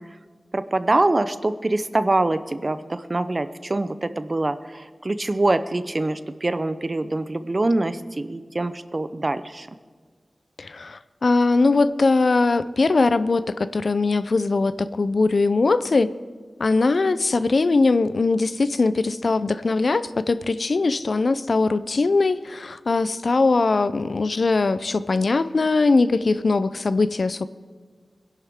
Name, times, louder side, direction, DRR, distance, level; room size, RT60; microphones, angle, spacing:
voice 1, 0.5-9.7, right 2 dB, 40° right, 12 dB, 0.6 m, -24 dB
voice 2, 10.6-16.1 16.6-27.5, left 3 dB, 70° left, 14 dB, 0.4 m, -21 dB
21.5 x 11.0 x 3.6 m, 1.5 s
wide cardioid pair, 70°, 0 cm